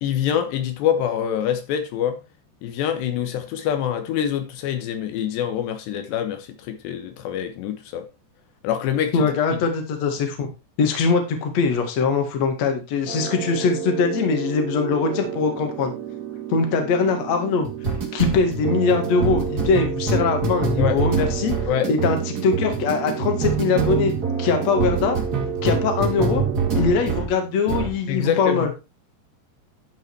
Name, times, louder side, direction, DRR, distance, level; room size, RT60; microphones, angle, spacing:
voice 1, 0.0-2.2 2.6-8.1 8.6-9.3 20.8-21.0 21.7-21.9 28.1-28.7, left 9 dB, 80° left, 3.3 m, -25 dB
voice 2, 9.1-10.5 10.8-15.9 16.5-17.7 18.1-21.5 21.9-24.1 24.4-25.2 25.6-26.4 26.7-28.7, left 5 dB, 50° left, 2.6 m, -22 dB
sound 1, 13.1-27.3 27.7-28.0, right 5 dB, 30° right, 1.9 m, -26 dB
11.5 x 5.6 x 4.6 m
omnidirectional pair, 4.9 m